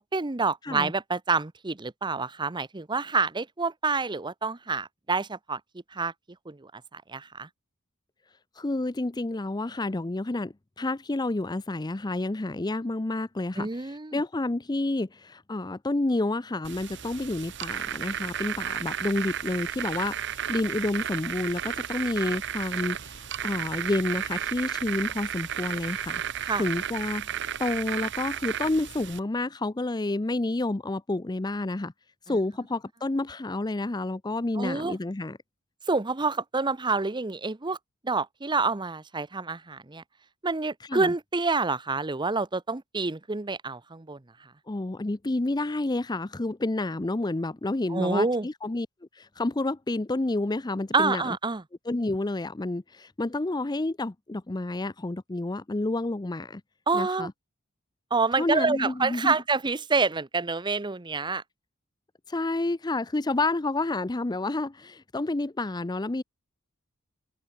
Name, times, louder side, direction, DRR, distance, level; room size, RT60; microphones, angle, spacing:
voice 1, 0.1-5.6 5.9-6.1 6.5-7.5 13.6-14.2 26.4-26.6 34.6-35.0 35.9-37.8 38.0-40.0 40.4-44.2 47.9-48.5 50.9-51.6 56.9-57.3 58.1-61.4, right 4 dB, 20° right, 0.8 m, -27 dB
voice 2, 8.6-26.2 26.6-27.3 27.6-31.9 32.3-35.4 40.9-41.1 44.7-48.9 49.2-51.4 51.9-56.6 56.9-57.3 58.4-59.4 62.3-66.2, left 2 dB, 20° left, 0.6 m, -29 dB
sound 1, 16.6-29.2, right 9 dB, 60° right, 1.7 m, -33 dB
head